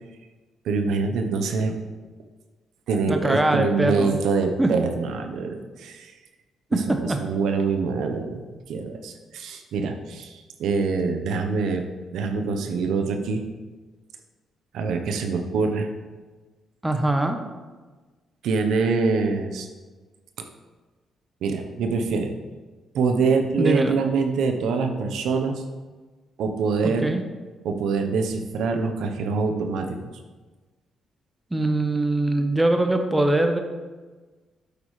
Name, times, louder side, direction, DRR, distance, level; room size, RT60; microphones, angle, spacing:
voice 1, 0.6-1.8 2.9-6.1 6.9-13.4 14.7-15.9 18.4-19.7 21.4-22.3 22.9-25.6 26.4-27.1 27.6-30.0, right 4 dB, 80° right, 6 dB, 0.9 m, -25 dB
voice 2, 3.1-4.2 4.6-4.7 6.7-7.2 16.8-17.4 23.6-24.0 26.8-27.2 31.5-33.6, right 2 dB, 10° right, 5 dB, 0.9 m, -22 dB
8.4 x 8.3 x 3.2 m, 1.3 s
cardioid pair, 90°, 0 cm